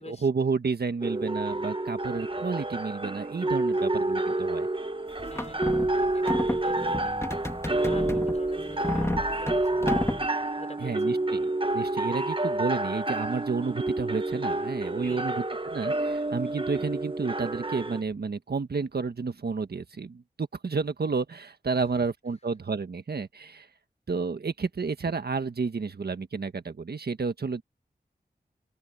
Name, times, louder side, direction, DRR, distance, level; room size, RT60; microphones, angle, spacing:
voice 1, 0.0-4.7 10.8-23.7 24.1-27.6, right 4 dB, 70° right, 1.6 m, -31 dB
sound 1, 1.0-18.0, right 2 dB, 30° right, 1.5 m, -29 dB
sound 2, 5.2-10.3, left 1 dB, 15° left, 2.3 m, -31 dB
voice 2, 5.3-11.3 15.0-15.5 21.7-22.0, left 2 dB, 40° left, 5.1 m, -48 dB
open air
cardioid pair, 45°, 17 cm